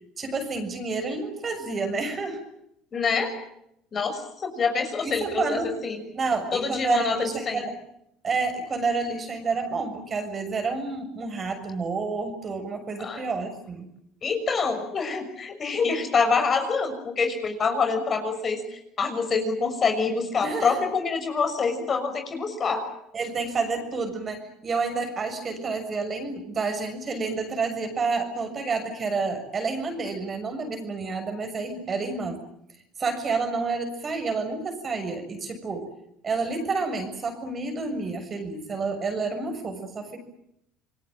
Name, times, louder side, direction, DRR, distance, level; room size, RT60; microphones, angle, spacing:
voice 1, 0.2-2.4 5.0-5.7 6.1-7.7 8.2-13.9 20.4-20.8 23.1-32.4 33.0-35.9 36.2-40.2, right 4 dB, 30° right, 6 dB, 6.8 m, -29 dB
voice 2, 2.9-3.3 3.9-6.0 6.5-7.6 13.0-13.2 14.2-22.8, left 5 dB, 35° left, 6 dB, 6.5 m, -26 dB
28.0 x 20.5 x 9.0 m, 0.77 s
supercardioid pair, 100°, 0 cm